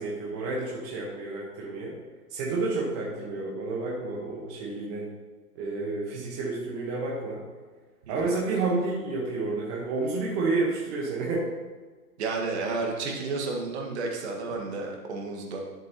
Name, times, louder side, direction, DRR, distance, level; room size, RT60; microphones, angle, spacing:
voice 1, 0.0-2.0 2.3-5.1 5.5-7.4 8.1-11.5 12.6-12.7, right 3 dB, 25° right, -4 dB, 1.3 m, -30 dB
voice 2, 12.2-15.6, right 3 dB, 45° right, 1 dB, 1.7 m, -31 dB
11.0 x 7.5 x 3.0 m, 1.4 s
hypercardioid pair, 150°, 46 cm